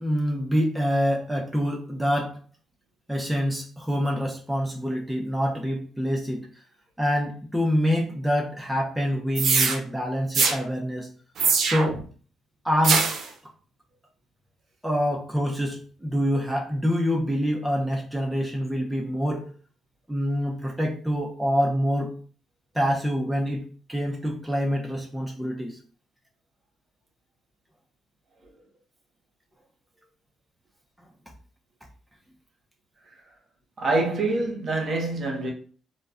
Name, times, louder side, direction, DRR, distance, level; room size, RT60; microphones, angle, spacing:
voice 1, 0.0-2.4 3.1-6.4 7.0-11.1 11.6-12.0 12.6-13.0 14.8-19.5 20.1-22.1 22.7-25.8, equal, 5° right, 0.5 m, -26 dB
sound 1, 9.4-9.8 10.3-10.6 11.4-12.0 12.8-13.3, right 5 dB, 70° right, 0.5 m, -22 dB
voice 2, 33.8-35.5, right 2 dB, 50° right, 0.8 m, -25 dB
2.2 x 2.1 x 3.5 m
cardioid pair, 90°, 0 cm